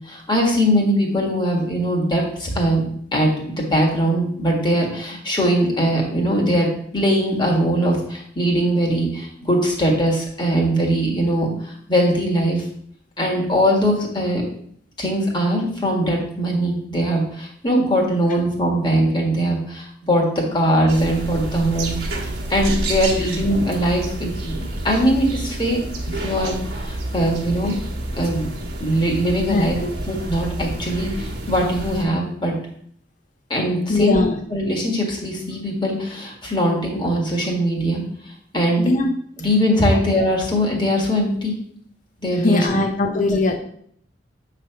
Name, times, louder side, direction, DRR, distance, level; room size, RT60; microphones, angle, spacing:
voice 1, 0.1-2.8 3.1-6.7 6.9-12.6 13.2-14.4 15.0-20.2 20.5-22.0 22.5-25.8 26.1-27.7 28.1-28.5 28.8-29.8 30.1-32.5 33.5-34.2 34.5-38.0 38.5-38.9 39.4-41.5 42.2-42.6 43.1-43.4, equal, 25° left, -1 dB, 1.6 m, -21 dB
sound 1, 20.9-32.0, right 1 dB, 60° right, 1.2 m, -29 dB
voice 2, 29.5-29.9 33.9-34.4 38.8-39.1 39.9-40.0 42.3-43.6, left 2 dB, 45° left, 4 dB, 0.7 m, -21 dB
7.5 x 3.3 x 5.6 m, 0.64 s
head